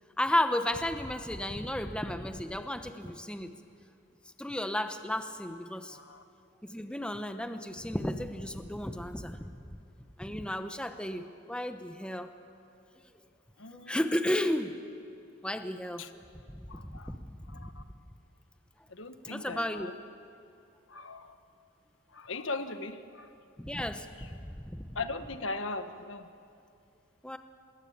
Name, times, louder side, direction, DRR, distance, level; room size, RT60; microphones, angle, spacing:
voice 1, 0.2-3.5 4.4-6.0 6.6-9.8 10.2-12.3 13.9-14.7 15.4-16.1 16.7-17.7 19.2-19.9 23.6-25.0 27.2-27.4, left 1 dB, 5° left, 8 dB, 0.9 m, -33 dB
voice 2, 5.9-6.2 13.6-14.0 16.0-16.1 16.7-17.2 17.5-17.8 18.9-19.9 20.9-21.4 22.1-23.3 24.2-24.3 24.9-26.3, left 3 dB, 70° left, 9 dB, 1.3 m, -39 dB
25.5 x 21.5 x 8.8 m, 2.5 s
head